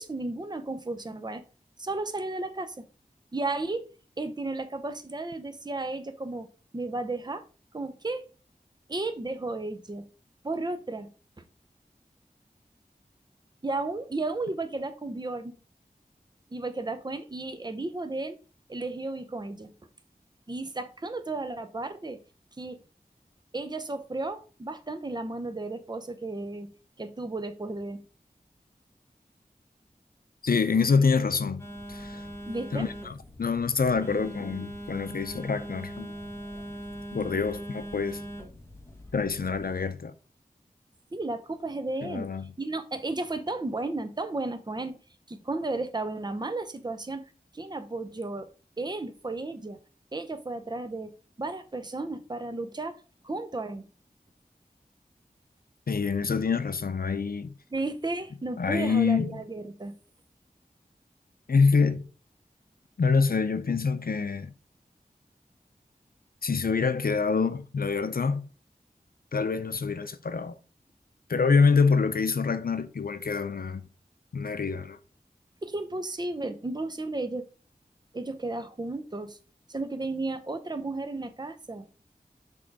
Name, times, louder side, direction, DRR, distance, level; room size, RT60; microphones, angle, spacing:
voice 1, 0.0-1.4 1.8-2.9 3.3-3.8 4.2-6.5 6.7-7.4 7.7-8.2 8.9-10.1 10.4-11.1 13.6-15.5 16.5-18.4 18.7-19.7 20.5-22.2 22.6-22.8 23.5-26.7 27.0-28.0 32.5-32.9 41.1-42.3 42.6-44.9 45.3-47.3 47.5-48.5 48.8-49.8 50.1-51.1 51.4-53.9 57.7-59.9 75.6-77.5 78.1-79.4 79.7-81.9, right 2 dB, 25° right, 0.7 m, -33 dB
voice 2, 30.4-31.6 31.9-32.2 32.7-36.1 37.1-38.2 39.1-40.1 42.0-42.5 55.9-57.5 58.6-59.4 61.5-62.0 63.0-64.5 66.4-68.5 69.3-70.6 71.3-73.9 74.3-75.0, left 5 dB, 75° left, 0.6 m, -26 dB
Telephone, 31.6-39.8, equal, 15° left, 1.5 m, -41 dB
6.3 x 3.7 x 4.6 m
wide cardioid pair, 65°, 15 cm